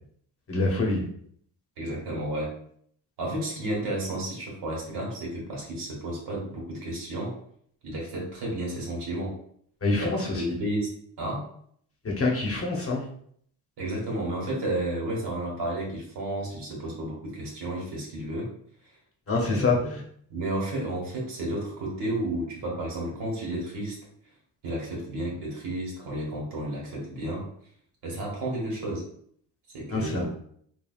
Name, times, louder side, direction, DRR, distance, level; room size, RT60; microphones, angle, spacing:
voice 1, 0.5-1.0 9.8-10.5 12.0-13.0 19.3-19.8 29.9-30.3, left 3 dB, 35° left, -1 dB, 0.9 m, -25 dB
voice 2, 1.8-2.5 3.2-7.4 7.8-9.4 10.0-11.4 13.8-18.5 19.4-19.9 20.3-24.0 24.6-27.5 28.0-29.1 29.7-30.4, right 1 dB, 65° right, -3 dB, 1.4 m, -32 dB
3.3 x 2.3 x 2.4 m, 0.64 s
cardioid pair, 75°, 42 cm